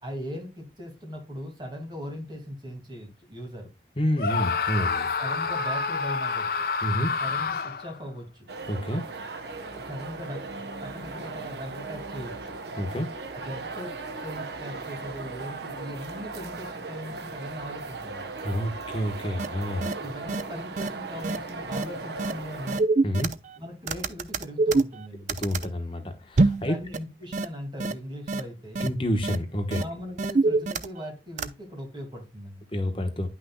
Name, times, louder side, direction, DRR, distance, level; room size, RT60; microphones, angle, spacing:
voice 1, 0.0-3.7 5.0-6.7 7.2-8.5 9.6-12.5 13.3-18.3 19.8-22.9 23.6-25.3 26.6-28.8 29.7-32.6, equal, 25° right, 2.2 m, -39 dB
voice 2, 4.0-5.0 6.8-7.1 8.7-9.0 12.8-13.1 18.4-19.9 23.0-23.3 25.4-26.8 28.8-29.8 32.7-33.3, equal, 30° left, 1.1 m, -28 dB
Screaming, 4.2-8.0, left 4 dB, 55° left, 0.6 m, -28 dB
sound 1, 8.5-22.8, right 3 dB, 70° right, 0.9 m, -38 dB
sound 2, 19.4-19.5 19.8-19.9 20.3-20.4 20.8-20.9 21.2-21.4 21.7-21.8 22.2-22.3 22.7-23.6 23.9-25.7 26.4-26.7 26.9-27.0 27.3-27.4 27.8-27.9 28.3-28.4 28.8-28.9 29.2-29.4 29.7-29.8 30.2-31.1 31.4-31.5, right 3 dB, 40° right, 0.4 m, -24 dB
9.8 x 6.0 x 2.2 m
head